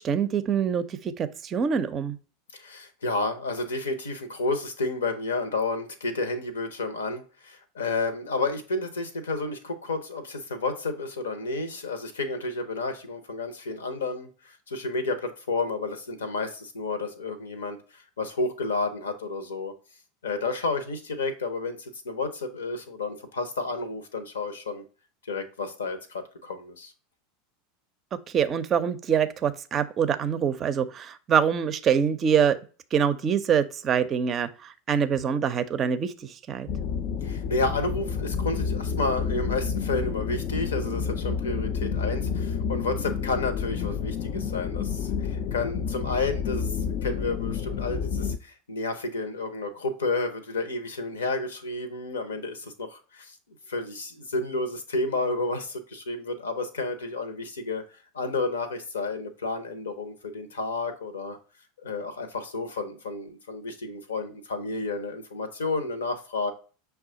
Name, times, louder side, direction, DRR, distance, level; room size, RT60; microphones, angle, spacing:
voice 1, 0.0-2.2 28.3-32.6 32.9-36.7, right 7 dB, 35° right, 0.5 m, -25 dB
voice 2, 2.5-19.7 20.2-24.8 25.3-26.9 37.2-53.3 53.7-57.8 58.1-61.4 61.8-66.5, left 3 dB, 80° left, 0.8 m, -31 dB
sound 1, 36.7-48.4, left 6 dB, 50° left, 0.4 m, -29 dB
6.1 x 2.3 x 3.6 m
figure-of-eight pair, 85°, 0 cm